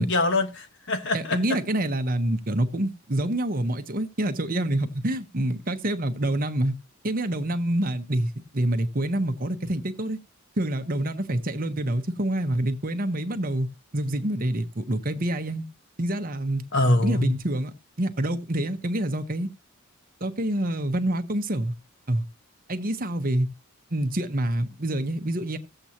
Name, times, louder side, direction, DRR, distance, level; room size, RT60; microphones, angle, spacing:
voice 1, 0.0-1.4 16.7-17.3, left 2 dB, 55° left, 1.2 m, -23 dB
voice 2, 1.1-6.7 7.0-10.2 10.6-13.7 13.9-15.7 16.0-16.6 17.0-19.5 20.2-21.7 22.1-22.2 22.7-23.5 23.9-25.6, right 1 dB, 40° right, 1.0 m, -27 dB
16.0 x 7.9 x 2.9 m
head